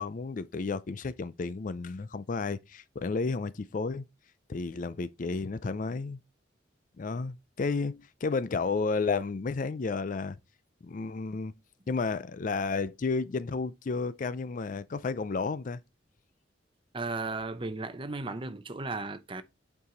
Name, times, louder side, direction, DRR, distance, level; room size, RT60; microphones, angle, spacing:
voice 1, 0.0-4.1 4.5-6.2 7.0-10.4 10.8-11.5 11.9-15.8, left 4 dB, 45° left, 0.4 m, -32 dB
voice 2, 16.9-19.4, right 3 dB, 30° right, 0.7 m, -35 dB
8.5 x 4.7 x 3.8 m
head